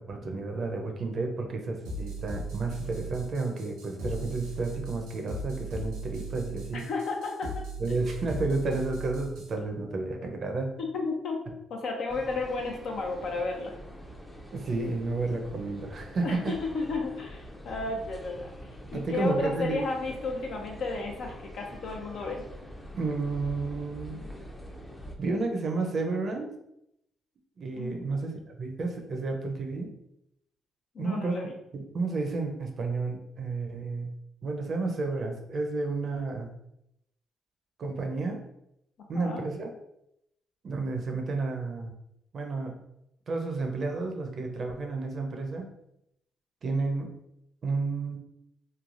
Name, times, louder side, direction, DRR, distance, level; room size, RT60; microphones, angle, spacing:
voice 1, 0.0-6.9 7.8-10.7 14.5-16.5 18.9-19.8 22.9-24.2 25.2-26.5 27.6-29.9 31.0-31.5 31.7-34.1 34.4-36.5 37.8-38.4 39.1-39.7 40.6-41.9 42.3-42.7 43.3-45.7 46.6-47.1 47.6-48.2, right 3 dB, 50° right, 4 dB, 0.6 m, -31 dB
sound 1, 1.8-9.5, right 2 dB, 85° right, 0.8 m, -38 dB
voice 2, 6.7-7.7 10.8-11.4 11.7-13.7 16.2-18.5 18.9-22.4 27.7-28.2 30.9-31.5 39.1-39.4, left 3 dB, 65° left, 1 dB, 0.6 m, -33 dB
sound 2, 12.1-25.2, equal, 10° left, 0.5 m, -45 dB
3.1 x 2.2 x 2.5 m, 0.80 s
supercardioid pair, 60°, 0 cm